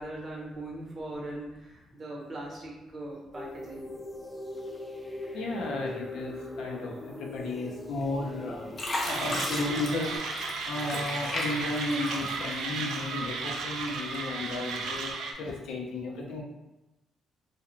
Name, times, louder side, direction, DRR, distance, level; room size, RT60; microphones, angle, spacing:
voice 1, 0.0-3.8, right 1 dB, 45° right, -2 dB, 0.8 m, -40 dB
sound 1, 3.3-10.2, left 1 dB, 5° left, 0.3 m, -41 dB
voice 2, 5.3-8.7 9.1-10.1 10.5-15.1 15.4-16.4, left 2 dB, 80° left, 0 dB, 0.4 m, -34 dB
Fill (with liquid), 8.0-8.4 8.8-13.2 13.6-14.4 14.9-15.1, left 1 dB, 45° left, 0.7 m, -36 dB
Mechanisms, 9.1-15.3, right 4 dB, 85° right, 0.3 m, -35 dB
2.3 x 2.0 x 3.0 m, 1.0 s
cardioid pair, 90°, 0 cm